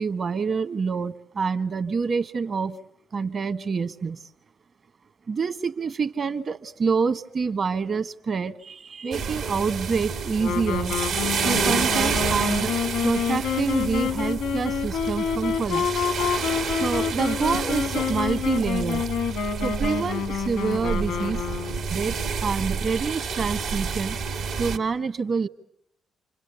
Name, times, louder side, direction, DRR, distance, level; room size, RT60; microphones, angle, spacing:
voice 1, 0.0-2.8 3.1-4.3 5.3-11.0 11.4-12.7 13.0-16.1 16.8-19.0 19.6-21.4 21.9-24.2 24.6-25.5, right 5 dB, 55° right, 11 dB, 1.2 m, -27 dB
sound 1, 9.1-24.8, right 5 dB, 85° right, 1.9 m, -29 dB
Wind instrument woodwind instrument, 10.4-22.1, left 7 dB, 85° left, 1.2 m, -28 dB
29.0 x 26.0 x 7.0 m, 0.71 s
supercardioid pair, 50°, 0 cm